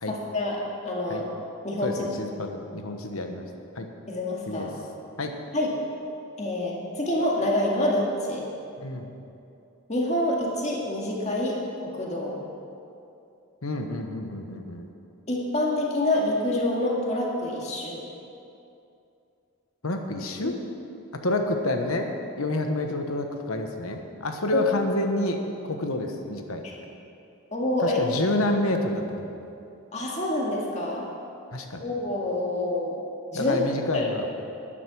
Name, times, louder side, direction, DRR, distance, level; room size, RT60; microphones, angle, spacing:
voice 1, 0.1-1.3 1.6-2.0 4.1-4.7 5.5-5.7 6.4-8.4 9.9-12.4 15.3-18.0 20.4-20.6 24.5-24.6 27.5-28.0 29.9-31.1 31.8-33.0 33.3-33.6 33.9-34.1, left 1 dB, 30° left, -3 dB, 2.0 m, -27 dB
voice 2, 1.8-3.5 3.7-3.9 4.5-4.7 5.2-5.3 8.8-9.1 13.6-14.9 19.8-20.6 21.1-22.1 22.3-26.6 27.8-29.3 31.5-31.9 33.3-34.3, left 1 dB, 80° left, 4 dB, 1.2 m, -28 dB
11.5 x 10.0 x 6.2 m, 2.7 s
head